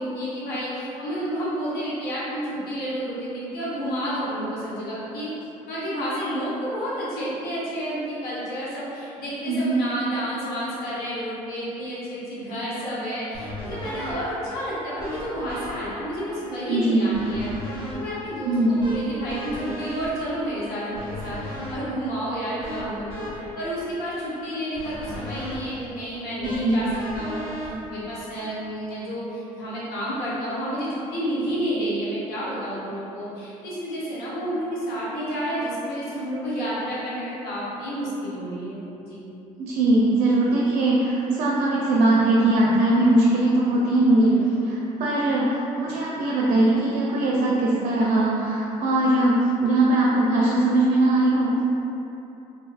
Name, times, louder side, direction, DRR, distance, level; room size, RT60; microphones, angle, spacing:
voice 1, 0.0-5.3 5.7-17.5 17.9-39.2 44.2-44.5, equal, 70° left, -8 dB, 0.9 m, -30 dB
voice 2, 9.5-9.8 16.7-17.1 18.5-18.7 26.4-26.8 39.6-51.6, right 2 dB, 60° right, -5 dB, 0.4 m, -20 dB
sound 1, 13.3-28.6, left 1 dB, 30° left, 1.0 m, -37 dB
2.7 x 2.3 x 2.3 m, 2.9 s
hypercardioid pair, 55°, 17 cm